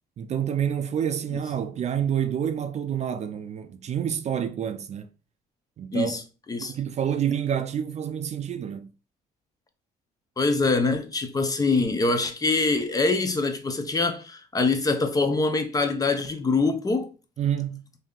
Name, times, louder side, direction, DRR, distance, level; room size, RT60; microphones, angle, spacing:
voice 1, 0.2-5.1 5.8-6.2 6.6-8.9 17.4-17.8, right 9 dB, 40° right, 0.4 m, -28 dB
voice 2, 10.4-17.1, left 3 dB, 20° left, 0.6 m, -24 dB
3.2 x 2.7 x 3.7 m
cardioid pair, 110°, 17 cm